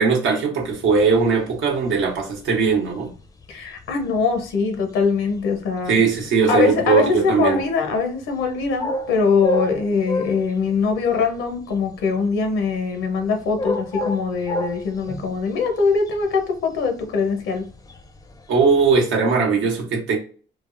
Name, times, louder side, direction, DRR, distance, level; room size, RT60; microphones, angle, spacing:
voice 1, 0.0-3.1 5.9-7.6 18.5-20.2, right 5 dB, 85° right, 0.9 m, -19 dB
sound 1, 0.6-19.0, left 1 dB, 15° left, 0.4 m, -32 dB
voice 2, 3.5-6.0 6.5-17.6, left 5 dB, 85° left, 0.7 m, -22 dB
3.3 x 2.0 x 2.4 m
cardioid pair, 90°, 20 cm